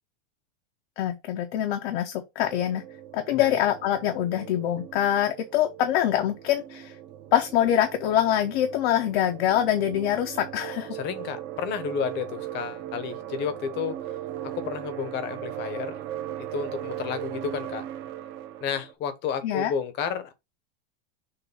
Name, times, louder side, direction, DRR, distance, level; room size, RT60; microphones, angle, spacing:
voice 1, 1.0-2.8 3.1-6.9 7.3-11.0 19.4-19.7, left 11 dB, 55° left, 1.0 m, -24 dB
sound 1, 2.4-18.9, right 12 dB, 30° right, 0.7 m, -38 dB
voice 2, 10.9-13.9 14.5-15.9 16.4-17.8 18.6-20.3, left 7 dB, 30° left, 1.0 m, -31 dB
6.8 x 2.6 x 5.4 m
supercardioid pair, 165°, 37 cm